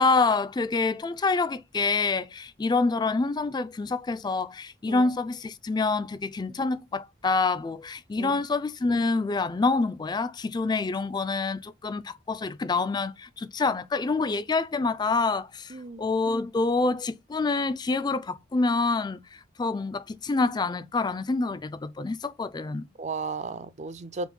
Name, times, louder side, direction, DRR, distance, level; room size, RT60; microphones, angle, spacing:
voice 1, 0.0-22.8, left 3 dB, 20° left, 0.3 m, -27 dB
voice 2, 15.7-16.0 23.0-24.3, right 4 dB, 40° right, 0.5 m, -34 dB
5.2 x 3.1 x 2.2 m
head